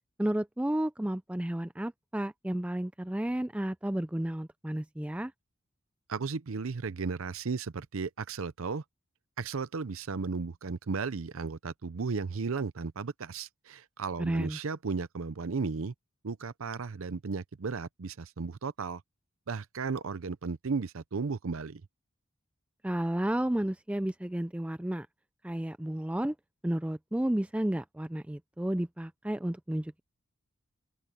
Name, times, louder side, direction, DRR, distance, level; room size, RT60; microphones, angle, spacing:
voice 1, 0.2-5.3 14.2-14.6 22.8-25.1 25.4-26.3 26.6-30.0, right 1 dB, 5° right, 0.3 m, -32 dB
voice 2, 6.1-8.8 9.4-15.9 16.2-19.0 19.5-21.8, right 4 dB, 75° right, 0.6 m, -35 dB
open air
head